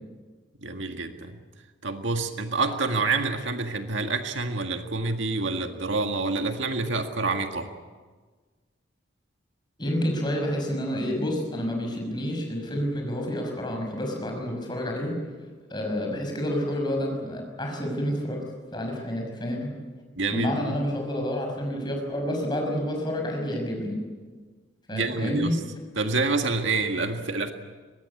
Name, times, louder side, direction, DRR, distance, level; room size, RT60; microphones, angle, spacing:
voice 1, 0.6-1.4 1.8-7.7 20.2-20.8 24.9-25.6 26.0-27.5, right 3 dB, 75° right, 5 dB, 1.8 m, -27 dB
voice 2, 9.8-15.2 15.7-18.4 18.7-19.7 20.3-24.0 24.9-25.6, equal, 20° left, 2 dB, 5.9 m, -29 dB
23.0 x 20.5 x 8.5 m, 1.4 s
head